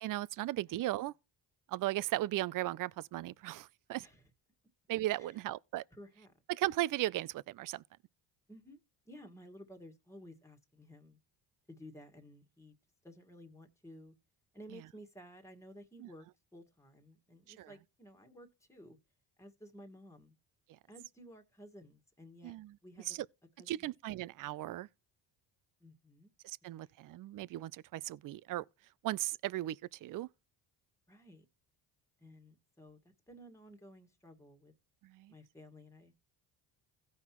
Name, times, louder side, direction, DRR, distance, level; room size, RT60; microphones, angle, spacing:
voice 1, 0.0-1.1 1.7-4.1 4.9-5.8 6.5-7.8 14.7-14.8 16.0-16.1 17.6-17.7 22.4-22.8 23.1-23.2 23.7-24.9 26.4-28.6 29.0-30.3 35.0-35.3, right 15 dB, 45° right, 0.4 m, -37 dB
voice 2, 5.9-6.3 8.5-8.8 9.0-11.2 11.7-12.7 13.0-14.1 14.5-19.0 19.4-20.3 20.9-22.5 22.8-23.2 23.6-23.9 25.8-26.3 26.8-26.9 31.1-31.4 32.2-34.7 35.3-36.1, equal, 5° left, 1.7 m, -55 dB
16.5 x 5.6 x 3.0 m
supercardioid pair, 80°, 46 cm